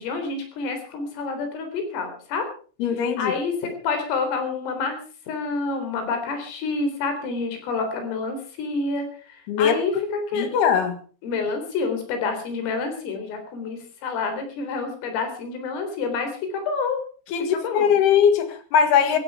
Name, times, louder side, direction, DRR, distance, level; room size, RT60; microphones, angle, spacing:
voice 1, 0.0-2.5 3.0-5.0 5.3-10.5 11.2-17.0 17.5-18.0 19.1-19.2, left 4 dB, 75° left, 6 dB, 6.4 m, -28 dB
voice 2, 2.8-3.3 9.5-9.7 10.3-10.9 17.3-19.2, left 7 dB, 60° left, 9 dB, 3.3 m, -20 dB
17.0 x 15.5 x 4.8 m, 0.41 s
omnidirectional pair, 5.9 m